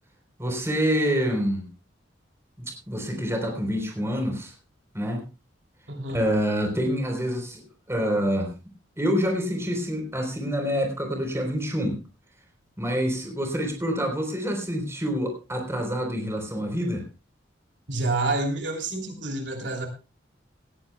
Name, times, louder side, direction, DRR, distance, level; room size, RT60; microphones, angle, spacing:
voice 1, 0.4-1.7 2.6-4.5 4.9-5.2 6.1-8.5 9.0-12.0 12.8-17.1, equal, 15° right, 3 dB, 3.9 m, -27 dB
voice 2, 5.9-6.2 17.9-19.9, right 2 dB, 70° right, 4 dB, 3.0 m, -28 dB
18.5 x 15.5 x 2.3 m, 0.29 s
head